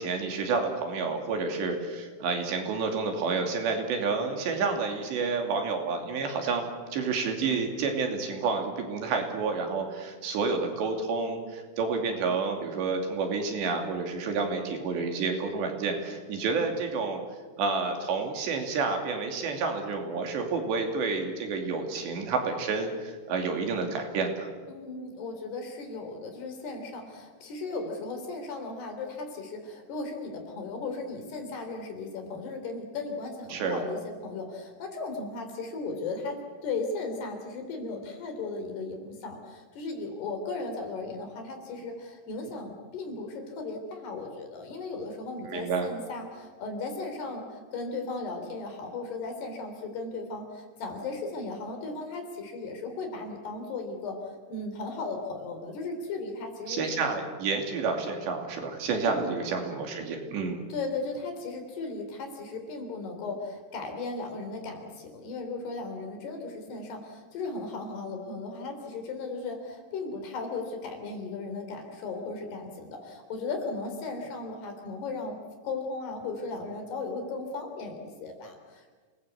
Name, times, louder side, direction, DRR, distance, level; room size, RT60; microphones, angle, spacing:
voice 1, 0.0-17.2 17.6-24.5 33.5-33.8 45.5-45.9 56.7-60.6, right 4 dB, 70° right, 4 dB, 4.9 m, -29 dB
voice 2, 24.7-54.2 54.5-57.0 59.0-59.3 60.7-75.4 75.6-79.0, left 3 dB, 60° left, 4 dB, 5.4 m, -36 dB
28.0 x 20.0 x 8.3 m, 1.5 s
omnidirectional pair, 5.3 m